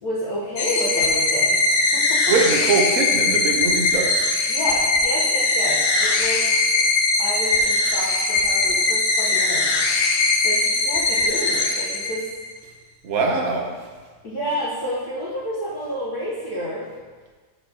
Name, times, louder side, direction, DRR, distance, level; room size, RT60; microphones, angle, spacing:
voice 1, 0.0-2.2 4.5-6.4 7.2-9.7 10.4-12.2 14.2-16.8, equal, 55° left, -7 dB, 1.5 m, -29 dB
sound 1, 0.6-12.5, left 3 dB, 90° left, 1.6 m, -20 dB
voice 2, 2.3-4.2 13.0-13.7, right 4 dB, 55° right, 1 dB, 1.1 m, -22 dB
11.0 x 4.6 x 2.8 m, 1.4 s
omnidirectional pair, 2.1 m